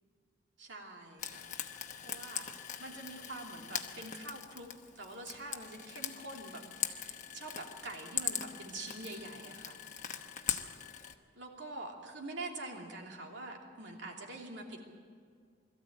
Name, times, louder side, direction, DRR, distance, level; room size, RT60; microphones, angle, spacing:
voice 1, 0.6-1.4 1.7-9.8 11.3-14.8, right 2 dB, 65° right, 1 dB, 2.9 m, -45 dB
Frying (food), 1.2-11.1, left 9 dB, 40° left, 1.1 m, -41 dB
21.5 x 14.0 x 8.8 m, 2.1 s
head